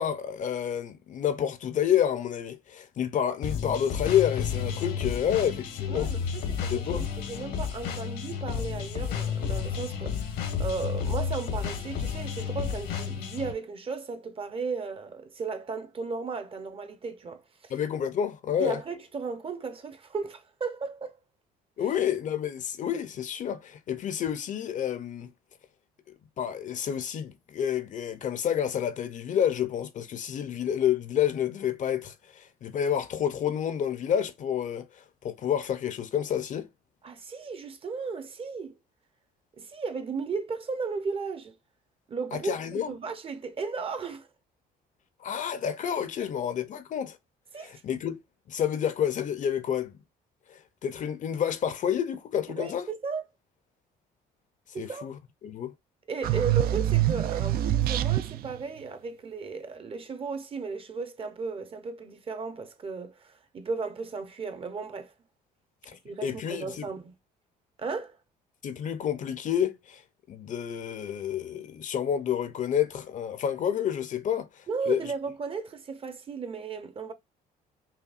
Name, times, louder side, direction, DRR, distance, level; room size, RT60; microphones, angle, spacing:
voice 1, 0.0-6.1 6.7-7.1 17.7-18.8 21.8-25.3 26.4-36.7 42.3-42.9 45.2-47.2 47.6-48.2 48.5-50.0 50.5-52.9 54.8-55.7 65.9-66.9 68.6-70.0 70.3-75.0, left 9 dB, 50° left, 0.6 m, -29 dB
sound 1, 3.4-13.5, left 7 dB, 85° left, 1.3 m, -31 dB
voice 2, 5.9-10.3 10.6-17.7 18.6-21.1 37.0-38.8 39.6-41.6 42.1-44.3 47.5-47.8 52.6-53.2 54.7-55.1 56.1-65.1 66.0-67.1 67.8-68.2 74.7-77.1, right 4 dB, 35° right, 0.7 m, -35 dB
sound 2, 56.2-58.6, right 13 dB, 65° right, 0.4 m, -25 dB
5.7 x 2.2 x 2.4 m
cardioid pair, 110°, 17 cm